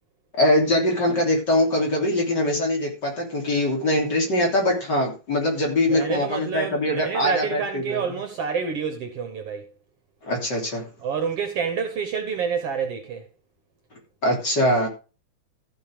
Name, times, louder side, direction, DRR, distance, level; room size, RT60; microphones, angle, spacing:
voice 1, 0.3-8.0 10.2-10.8 14.2-14.9, left 1 dB, 35° left, 3.4 m, -22 dB
voice 2, 5.9-9.7 11.0-13.3, right 6 dB, 60° right, 1.9 m, -28 dB
14.5 x 5.5 x 5.1 m
omnidirectional pair, 3.5 m